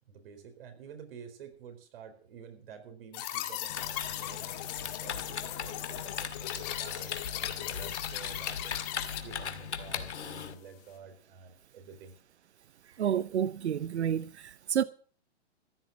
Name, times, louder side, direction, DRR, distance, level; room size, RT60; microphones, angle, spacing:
voice 1, 0.1-8.8 9.2-12.2, right 6 dB, 60° right, 4.3 m, -50 dB
sound 1, 3.1-9.2, left 13 dB, 35° left, 2.1 m, -38 dB
Typing, 3.7-10.5, left 7 dB, 90° left, 2.0 m, -39 dB
voice 2, 13.0-14.8, right 9 dB, 85° right, 0.8 m, -30 dB
15.0 x 10.5 x 6.0 m
hypercardioid pair, 145°, 33 cm